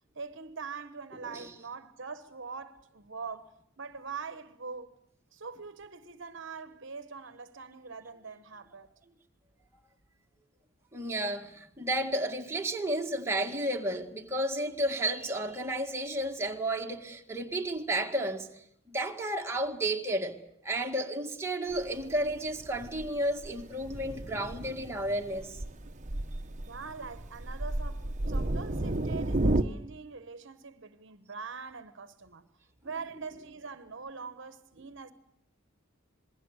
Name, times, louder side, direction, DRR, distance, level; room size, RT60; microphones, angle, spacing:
voice 1, 0.1-4.9 5.3-8.9 26.7-32.5 32.8-35.1, right 5 dB, 60° right, 1.1 m, -43 dB
voice 2, 10.9-20.4 20.6-25.6, right 1 dB, 10° right, 1.9 m, -32 dB
Thunder, 21.7-29.6, right 1 dB, 35° right, 1.0 m, -33 dB
27.0 x 21.5 x 8.1 m
head